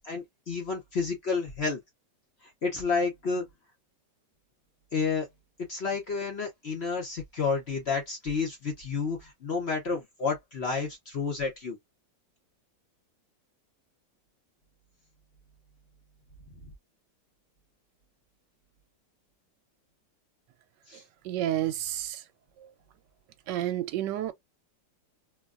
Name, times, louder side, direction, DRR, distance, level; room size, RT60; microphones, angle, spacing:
voice 1, 0.0-1.8 2.4-3.4 4.9-5.3 5.7-11.8 20.9-21.0, left 4 dB, 50° left, 0.8 m, -30 dB
voice 2, 21.2-22.2 22.6-22.7 23.5-24.3, right 13 dB, 75° right, 1.2 m, -30 dB
3.0 x 2.3 x 2.4 m
omnidirectional pair, 2.0 m